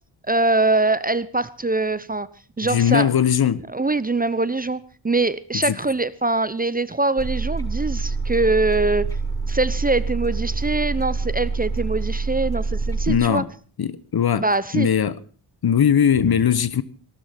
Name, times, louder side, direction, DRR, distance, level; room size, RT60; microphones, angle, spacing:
voice 1, 0.3-2.3 2.6-3.1 3.7-9.1 9.5-13.4 14.4-14.9, right 2 dB, 20° right, 0.8 m, -23 dB
voice 2, 2.6-3.6 5.5-5.8 13.1-13.5 13.8-14.4 14.7-15.2 15.6-16.8, left 8 dB, 50° left, 1.2 m, -19 dB
sound 1, 7.2-13.2, right 4 dB, 5° left, 6.8 m, -26 dB
18.0 x 12.5 x 5.8 m
supercardioid pair, 55°, 49 cm